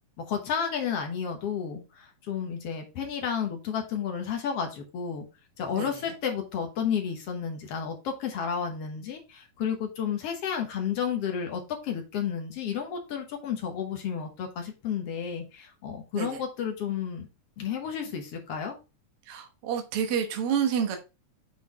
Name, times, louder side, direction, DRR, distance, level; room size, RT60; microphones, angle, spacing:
voice 1, 0.3-5.3 5.6-17.3 17.6-18.7, left 7 dB, 60° left, 3 dB, 1.9 m, -32 dB
voice 2, 5.8-6.1 16.1-16.4 19.3-21.0, right 8 dB, 55° right, 4 dB, 1.8 m, -29 dB
7.4 x 4.1 x 3.7 m, 0.28 s
omnidirectional pair, 3.5 m